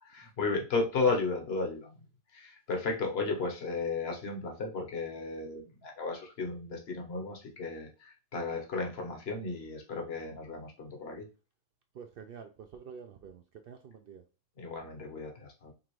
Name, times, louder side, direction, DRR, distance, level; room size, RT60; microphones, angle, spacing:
voice 1, 0.0-2.0 2.3-11.3 14.6-15.7, left 3 dB, 55° left, 1.2 m, -34 dB
voice 2, 11.9-14.2, right 6 dB, 65° right, 0.6 m, -48 dB
5.4 x 2.5 x 3.0 m
omnidirectional pair, 1.4 m